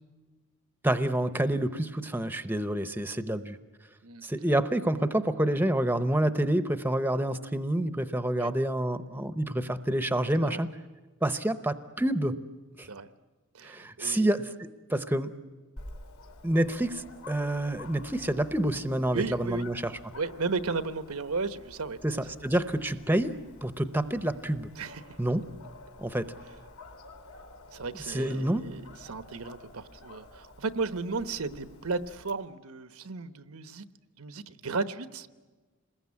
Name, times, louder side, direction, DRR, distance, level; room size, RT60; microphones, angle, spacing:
voice 1, 0.8-3.6 4.2-10.7 11.2-12.3 12.8-12.9 13.6-15.3 16.4-19.9 22.0-23.3 23.6-24.7 25.2-25.4 26.0-26.3 28.0-28.6, right 1 dB, 10° right, 11 dB, 0.7 m, -28 dB
voice 2, 13.5-14.3 19.1-19.7 20.1-22.0 22.3-22.4 24.8-25.0 27.7-33.9 34.2-35.3, right 4 dB, 85° right, 12 dB, 1.0 m, -34 dB
Dog, 15.8-32.3, left 2 dB, 75° left, 3.2 m, -50 dB
27.5 x 21.0 x 9.7 m, 1.3 s
head